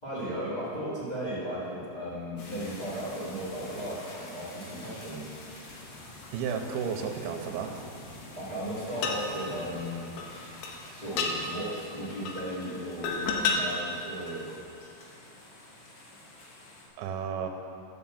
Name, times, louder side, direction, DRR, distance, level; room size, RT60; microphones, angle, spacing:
voice 1, 0.0-5.3 8.3-10.1 10.9-14.5, equal, 25° left, -9 dB, 0.8 m, -36 dB
sound 1, 2.4-16.9, left 1 dB, 75° left, 3.6 m, -47 dB
voice 2, 6.3-7.8 17.0-17.5, right 6 dB, 80° right, 3 dB, 2.4 m, -32 dB
sound 2, 9.0-9.2 10.2-10.3 10.6-10.7 11.2-11.3 12.3-12.5 13.0-13.6 14.5-14.6, left 5 dB, 90° left, 3.1 m, -29 dB
10.0 x 5.5 x 7.1 m, 2.6 s
omnidirectional pair, 5.0 m